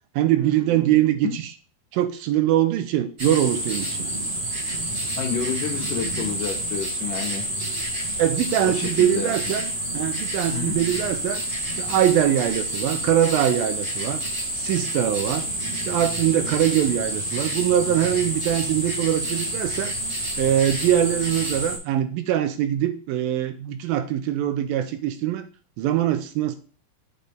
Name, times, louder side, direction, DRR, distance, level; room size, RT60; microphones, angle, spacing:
voice 1, 0.2-1.4 1.9-4.1 8.2-11.4 11.8-14.2 14.5-15.5 15.8-19.9 20.4-25.5 25.8-26.6, right 11 dB, 80° right, 10 dB, 2.2 m, -22 dB
sound 1, 3.2-21.8, right 1 dB, 65° right, 0.5 m, -29 dB
voice 2, 5.2-7.5 8.6-9.6 10.5-10.8, left 7 dB, 70° left, 2 dB, 2.3 m, -30 dB
8.8 x 5.2 x 3.5 m, 0.40 s
omnidirectional pair, 4.5 m